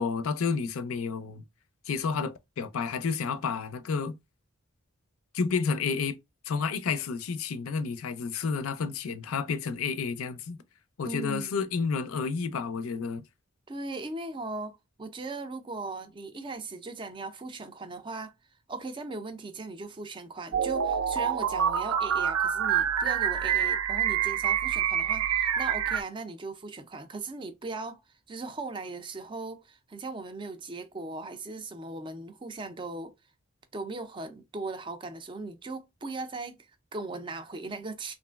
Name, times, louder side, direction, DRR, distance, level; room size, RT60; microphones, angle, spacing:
voice 1, 0.0-1.4 1.9-4.1 5.3-6.2 6.5-10.6 11.0-13.2, left 5 dB, 85° left, 0.4 m, -30 dB
voice 2, 11.0-11.5 13.7-18.3 18.7-33.1 33.7-38.2, right 3 dB, 25° right, 0.4 m, -38 dB
sound 1, 20.5-26.0, right 8 dB, 90° right, 0.4 m, -26 dB
3.1 x 2.5 x 2.2 m
head